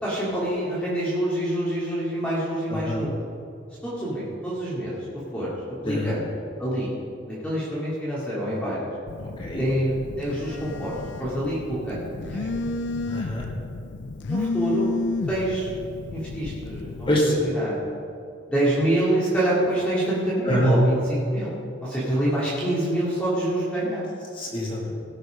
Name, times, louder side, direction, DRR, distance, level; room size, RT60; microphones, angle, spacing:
voice 1, 0.0-3.1 3.8-4.9 5.3-5.5 5.8-6.2 6.6-6.9 7.2-8.9 9.6-10.9 11.2-12.6 14.3-14.9 15.3-15.7 16.1-17.1 17.4-18.0 18.5-24.1, right 1 dB, 5° left, -10 dB, 2.9 m, -26 dB
voice 2, 2.7-3.0 5.9-6.1 9.4-9.6 13.1-13.5 17.1-17.4 20.5-20.7 24.3-24.9, equal, 25° left, -4 dB, 2.0 m, -25 dB
Telephone, 9.1-17.1, left 3 dB, 65° left, 0.4 m, -32 dB
17.5 x 6.7 x 5.4 m, 2.5 s
head